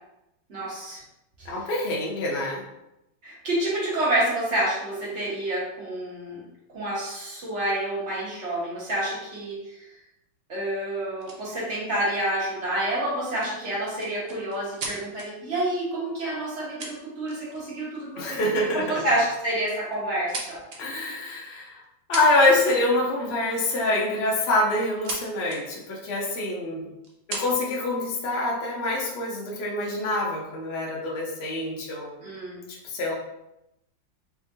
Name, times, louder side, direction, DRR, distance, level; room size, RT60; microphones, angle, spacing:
voice 1, 0.5-1.0 3.2-6.4 6.7-9.6 10.5-20.6 32.2-32.6, right 1 dB, 40° right, -6 dB, 1.5 m, -28 dB
voice 2, 1.5-2.6 18.2-19.0 20.8-21.8 22.1-26.9 27.3-32.1 32.9-33.1, left 2 dB, 50° left, -3 dB, 0.8 m, -25 dB
sound 1, 11.2-11.4 13.4-15.3 16.4-16.5 16.8-17.6 18.0-18.2 19.1-19.4 19.8-20.8 21.8-21.9 22.1-22.9 24.4-25.2 25.5-25.6 26.3-26.4 27.0-27.8 28.5-29.2, right 3 dB, 70° right, 0.5 m, -37 dB
3.7 x 3.6 x 2.7 m, 0.87 s
omnidirectional pair, 2.0 m